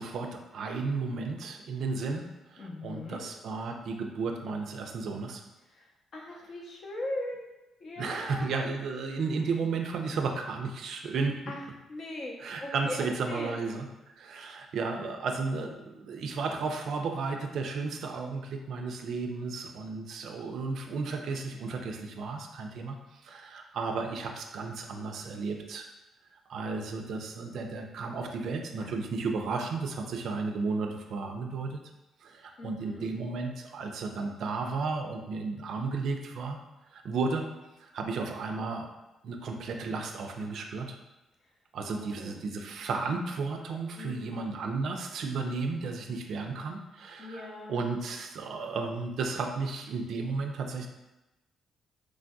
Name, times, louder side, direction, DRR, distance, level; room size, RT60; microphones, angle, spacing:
voice 1, 0.0-5.4 8.0-11.4 12.4-13.9 14.2-23.0 23.2-25.9 26.5-31.8 32.2-36.6 36.9-37.5 37.8-38.9 39.2-41.0 41.7-50.9, right 4 dB, 70° right, 3 dB, 0.3 m, -33 dB
voice 2, 2.6-3.2 5.7-7.5 7.8-8.5 11.5-13.0 13.3-13.6 28.8-29.0 32.6-33.1 41.9-42.5 43.9-44.5 47.2-47.8, left 1 dB, 55° left, -1 dB, 0.6 m, -40 dB
3.2 x 2.6 x 2.2 m, 1.0 s
cardioid pair, 90°, 0 cm